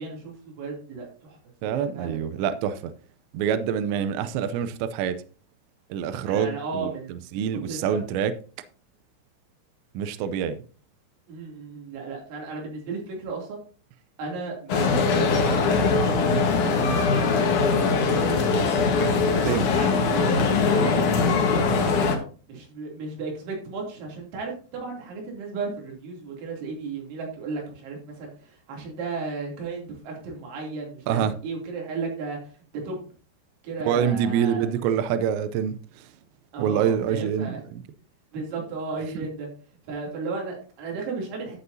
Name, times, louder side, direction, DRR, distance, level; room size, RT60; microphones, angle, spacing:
voice 1, 0.0-2.4 6.3-7.3 7.7-8.0 10.2-10.3 11.3-13.7 14.2-18.9 19.7-21.8 22.5-32.4 32.7-33.0 33.6-34.7 36.5-37.6 38.3-39.5 39.8-41.6, right 4 dB, 65° right, 5.1 m, -35 dB
voice 2, 1.6-2.9 3.3-5.1 5.9-6.9 7.3-8.3 9.9-10.6 19.5-19.7 31.1-31.3 33.9-35.8 36.6-37.8, right 8 dB, 85° right, 2.5 m, -26 dB
sound 1, 14.7-22.2, left 4 dB, 85° left, 1.7 m, -21 dB
12.0 x 8.0 x 2.7 m
omnidirectional pair, 5.9 m